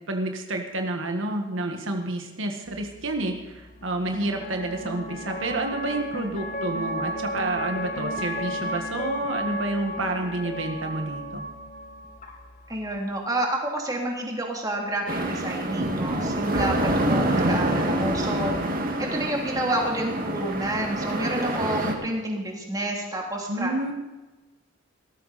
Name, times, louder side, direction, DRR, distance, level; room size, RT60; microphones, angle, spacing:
voice 1, 0.1-11.4 23.5-23.9, right 2 dB, 85° right, 4 dB, 1.6 m, -29 dB
sound 1, 2.7-13.0, equal, 40° left, 1.4 m, -34 dB
voice 2, 12.7-18.5 19.0-23.7, right 1 dB, 20° right, -1 dB, 2.9 m, -29 dB
sound 2, 15.1-21.9, right 1 dB, 50° right, 2.0 m, -26 dB
18.0 x 13.5 x 4.2 m, 1.1 s
head